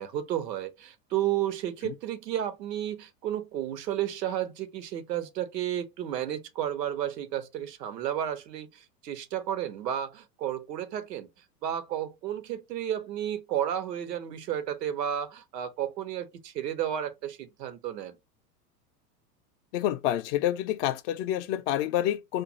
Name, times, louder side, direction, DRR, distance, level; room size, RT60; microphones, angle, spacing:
voice 1, 0.0-11.3 11.6-18.2, right 10 dB, 85° right, 0.9 m, -32 dB
voice 2, 19.7-22.4, left 12 dB, 50° left, 0.5 m, -28 dB
2.5 x 2.3 x 3.9 m
hypercardioid pair, 105°, 48 cm